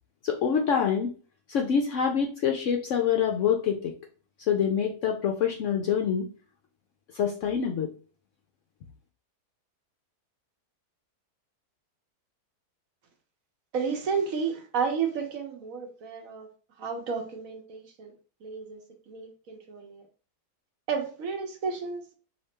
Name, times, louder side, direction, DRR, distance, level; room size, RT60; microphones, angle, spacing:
voice 1, 0.2-1.1 1.5-3.9 4.5-6.3 7.1-7.9, left 7 dB, 70° left, 3 dB, 0.7 m, -26 dB
voice 2, 13.7-16.5 16.8-18.1 18.4-18.8 19.1-20.0 20.9-22.1, right 6 dB, 60° right, 3 dB, 1.1 m, -32 dB
4.8 x 2.9 x 3.2 m, 0.38 s
omnidirectional pair, 1.7 m